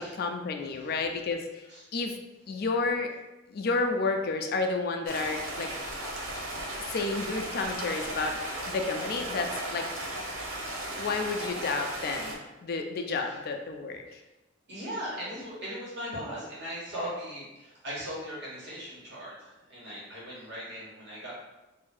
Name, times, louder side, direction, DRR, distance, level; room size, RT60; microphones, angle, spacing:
voice 1, 0.0-1.7 1.9-2.2 2.5-3.1 3.5-5.7 6.9-8.4 8.7-9.9 11.0-14.2, left 3 dB, 50° left, 4 dB, 0.4 m, -31 dB
voice 2, 0.7-1.0 1.7-1.9 7.8-8.0 13.2-13.4 14.0-14.3 14.7-21.3, equal, 60° right, -6 dB, 1.3 m, -39 dB
Stream, 5.1-12.3, right 1 dB, 75° right, 0.7 m, -36 dB
2.7 x 2.6 x 3.8 m, 0.99 s
head